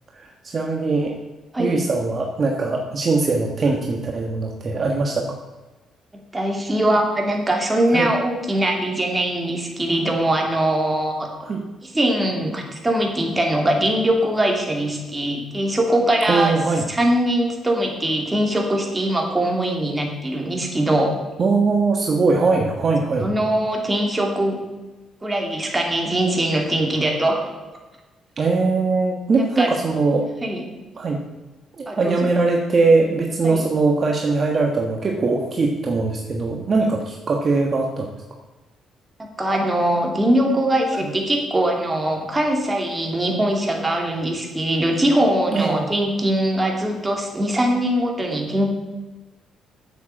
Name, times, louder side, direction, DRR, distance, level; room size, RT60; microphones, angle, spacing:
voice 1, 0.1-1.1 1.6-5.4 7.9-8.1 11.4-11.6 16.3-16.8 21.4-23.3 28.4-30.3 31.0-31.2 31.8-38.1 45.5-45.9, right 3 dB, 45° right, 1 dB, 1.4 m, -21 dB
voice 2, 6.1-11.3 11.8-16.5 16.9-21.2 23.2-24.6 25.2-27.5 29.4-29.7 30.4-30.6 31.9-32.2 33.4-33.7 39.2-48.7, right 1 dB, 15° right, 1 dB, 2.9 m, -21 dB
9.1 x 7.6 x 7.7 m, 1.2 s
cardioid pair, 90°, 0 cm